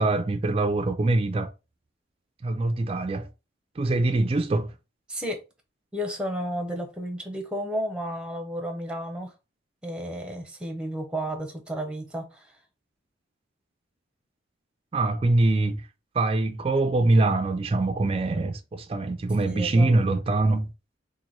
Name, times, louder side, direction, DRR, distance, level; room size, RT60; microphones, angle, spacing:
voice 1, 0.0-1.5 2.4-3.3 3.8-4.7 14.9-15.8 16.1-20.7, right 2 dB, 30° right, 0.3 m, -23 dB
voice 2, 5.1-5.4 5.9-9.3 9.8-12.6 19.5-19.9, equal, 5° right, 0.7 m, -32 dB
3.0 x 2.6 x 4.0 m
head